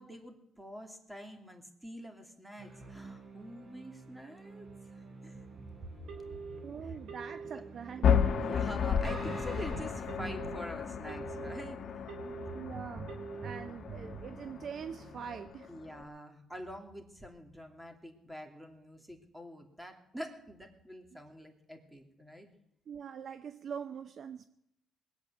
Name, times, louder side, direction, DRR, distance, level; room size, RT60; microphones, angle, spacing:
voice 1, 0.0-5.4 5.8-6.2 6.8-7.0 7.4-7.6 8.4-12.0 15.7-22.5, equal, 10° right, 2.8 m, -46 dB
sound 1, 2.6-15.4, right 4 dB, 40° right, 3.8 m, -48 dB
Telephone, 6.1-6.6 7.1-7.6 8.1-8.6 9.1-9.6 10.1-10.6 11.1-11.6 12.1-12.6 13.1-13.6, right 5 dB, 85° right, 2.9 m, -44 dB
voice 2, 6.6-8.4 12.5-13.1 13.4-15.7 22.9-24.5, right 7 dB, 60° right, 0.6 m, -43 dB
sound 2, 8.0-16.0, left 7 dB, 65° left, 1.2 m, -33 dB
20.5 x 8.3 x 7.7 m
cardioid pair, 90°, 0 cm